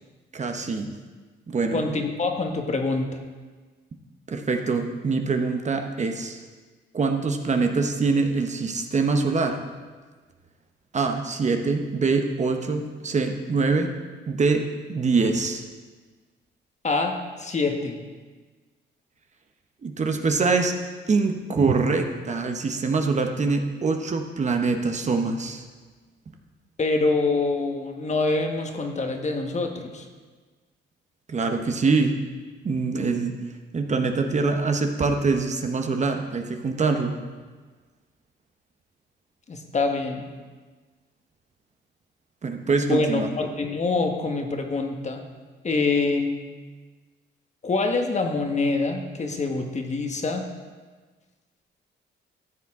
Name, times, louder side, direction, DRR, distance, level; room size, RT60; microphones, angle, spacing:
voice 1, 0.3-0.9 1.5-1.8 4.3-6.4 6.9-9.6 10.9-13.9 14.3-15.6 19.8-20.7 21.1-25.6 31.3-32.1 32.6-33.4 33.7-37.1 42.4-43.3, right 4 dB, 35° right, 5 dB, 0.9 m, -24 dB
voice 2, 1.7-3.1 16.8-17.1 17.4-18.0 26.8-30.0 39.5-40.3 42.8-45.2 45.6-46.3 47.6-50.4, left 3 dB, 35° left, 3 dB, 1.3 m, -25 dB
13.5 x 7.1 x 3.6 m, 1.4 s
cardioid pair, 90°, 20 cm